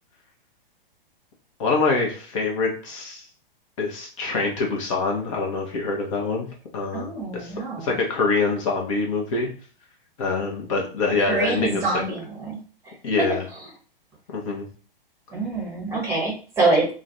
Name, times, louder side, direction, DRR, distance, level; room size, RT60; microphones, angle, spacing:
voice 1, 1.6-3.2 3.8-6.5 6.7-9.5 10.2-12.0 13.0-13.4 14.3-14.7, left 3 dB, 35° left, -1 dB, 0.7 m, -25 dB
voice 2, 6.9-7.9 11.2-12.6 15.3-16.9, right 3 dB, 10° right, -1 dB, 0.9 m, -25 dB
2.5 x 2.2 x 3.8 m, 0.39 s
figure-of-eight pair, 115°, 29 cm